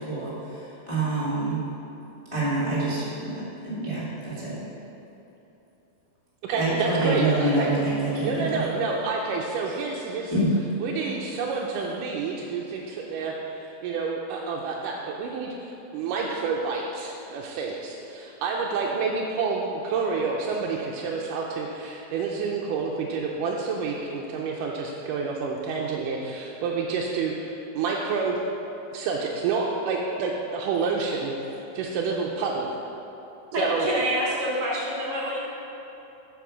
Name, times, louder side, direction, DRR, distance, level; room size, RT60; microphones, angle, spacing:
voice 1, 0.0-1.6 2.3-4.6 6.5-8.6 10.3-10.5, right 2 dB, 15° left, -9 dB, 1.1 m, -26 dB
voice 2, 6.4-7.7 8.2-10.3 10.8-28.4 28.9-32.8 33.6-33.9, right 4 dB, 80° right, -2 dB, 2.0 m, -29 dB
voice 3, 33.5-35.4, equal, 35° right, -6 dB, 1.8 m, -27 dB
8.2 x 6.0 x 6.2 m, 3.0 s
omnidirectional pair, 4.2 m